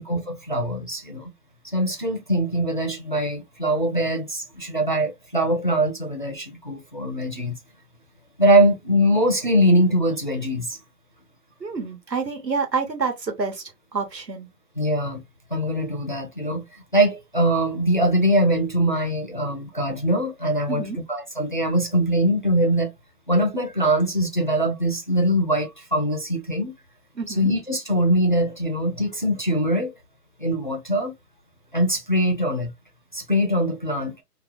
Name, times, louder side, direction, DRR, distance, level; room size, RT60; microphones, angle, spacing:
voice 1, 0.0-1.3 1.7-7.6 8.4-10.8 14.8-15.2 15.5-16.6 16.9-22.9 23.3-26.7 27.3-29.9 30.4-31.1 31.7-32.7 33.1-34.1, right 1 dB, 35° left, 0.4 m, -22 dB
voice 2, 11.6-14.5 20.7-21.0 27.1-27.5, right 5 dB, 85° right, 1.3 m, -28 dB
2.9 x 2.1 x 3.7 m
figure-of-eight pair, 150°, 49 cm